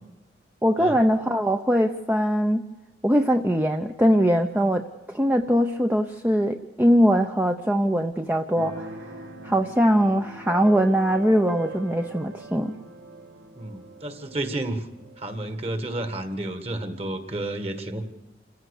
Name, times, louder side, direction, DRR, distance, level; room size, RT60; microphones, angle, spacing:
voice 1, 0.6-2.6 3.0-8.9 9.4-12.7, equal, 10° right, 5 dB, 0.6 m, -21 dB
Keyboard (musical), 8.5-16.0, right 2 dB, 80° right, 2.0 m, -41 dB
voice 2, 13.5-14.9 15.2-18.0, right 1 dB, 35° right, 8 dB, 1.8 m, -31 dB
27.0 x 15.5 x 6.6 m, 1.1 s
head